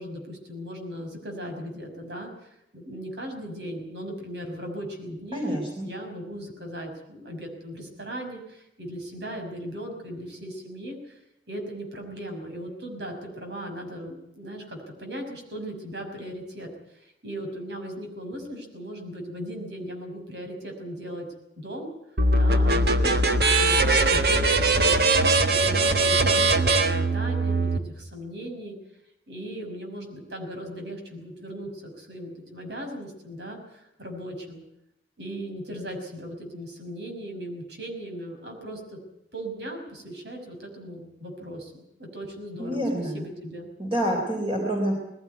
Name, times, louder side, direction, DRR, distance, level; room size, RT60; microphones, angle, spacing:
voice 1, 0.0-2.3 2.7-11.2 11.5-21.3 21.6-21.9 22.3-24.9 25.5-28.7 29.3-34.6 35.2-39.0 39.3-42.9 43.1-43.7, equal, 80° right, 4 dB, 5.9 m, -37 dB
voice 2, 5.3-5.9 42.6-43.2 43.8-44.9, equal, 30° right, 0 dB, 3.6 m, -27 dB
sound 1, 22.2-27.8, right 2 dB, 60° right, 1.5 m, -21 dB
20.0 x 16.0 x 9.3 m, 0.83 s
head